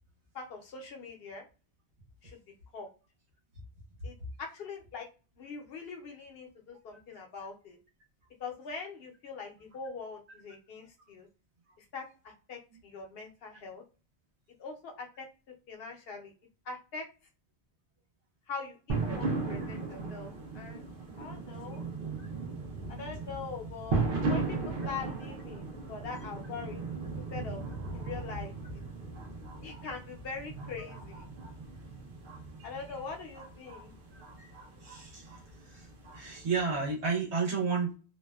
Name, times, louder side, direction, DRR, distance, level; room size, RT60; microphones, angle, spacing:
voice 1, 0.3-1.4 2.2-2.4 2.7-2.9 4.0-5.1 5.4-7.8 8.4-11.3 11.9-13.8 14.6-15.3 15.7-16.3 16.6-17.1 18.5-20.8 21.2-21.8 22.9-26.8 27.3-27.6 27.9-28.5 29.6-31.2 32.6-33.9, left 4 dB, 65° left, 2 dB, 0.8 m, -42 dB
sound 1, 18.9-36.9, right 3 dB, 60° right, 0.7 m, -37 dB
voice 2, 34.1-34.5 34.8-35.2 36.1-37.9, right 5 dB, 80° right, -3 dB, 1.1 m, -31 dB
2.6 x 2.1 x 2.2 m, 0.33 s
omnidirectional pair, 1.1 m